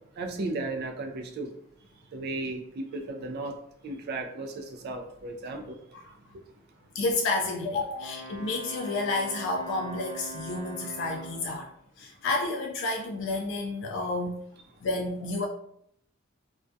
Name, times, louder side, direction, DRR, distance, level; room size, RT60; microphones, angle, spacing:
voice 1, 0.2-1.5 2.1-3.5 3.8-5.8, right 2 dB, 50° right, 3 dB, 0.3 m, -35 dB
voice 2, 6.9-11.7 12.0-14.4 14.8-15.5, left 2 dB, 65° left, 1 dB, 0.3 m, -30 dB
Wind instrument woodwind instrument, 7.9-11.7, right 2 dB, 20° left, 0.6 m, -42 dB
2.3 x 2.1 x 2.5 m, 0.70 s
head